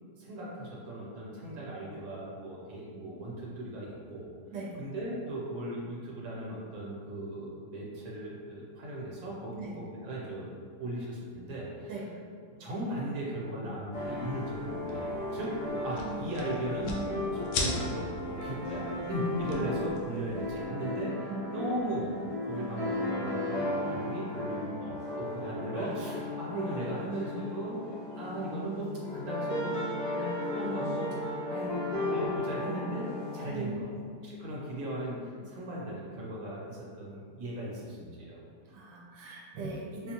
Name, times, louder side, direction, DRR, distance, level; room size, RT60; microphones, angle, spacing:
voice 1, 0.2-4.2 4.8-10.5 10.8-11.9 12.6-17.1 17.3-22.2 22.5-27.8 28.1-29.8 30.0-33.9 34.2-38.4, right 1 dB, 60° right, -5 dB, 1.3 m, -37 dB
sound 1, 13.9-20.6, left 3 dB, 90° left, 1.2 m, -40 dB
sound 2, 13.9-33.4, left 1 dB, 70° left, 1.4 m, -35 dB
voice 2, 33.4-34.0 35.4-35.5 38.6-40.1, right 2 dB, 90° right, -3 dB, 1.2 m, -40 dB
4.1 x 2.3 x 2.9 m, 2.1 s
omnidirectional pair, 1.8 m